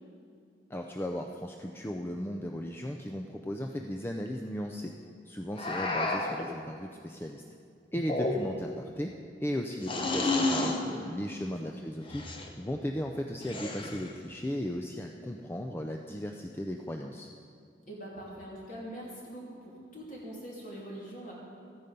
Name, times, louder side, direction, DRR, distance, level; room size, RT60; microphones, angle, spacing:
voice 1, 0.7-4.9 5.3-7.4 7.9-9.1 9.4-12.3 12.6-17.3, equal, 10° left, 3 dB, 0.4 m, -36 dB
sound 1, 5.6-6.5 8.0-8.7 9.8-10.8 12.1-12.5 13.4-14.1, left 2 dB, 30° left, 0.9 m, -31 dB
voice 2, 10.5-11.1 11.6-11.7 17.9-21.3, right 1 dB, 45° left, -4 dB, 3.0 m, -43 dB
13.5 x 9.7 x 5.3 m, 2.3 s
head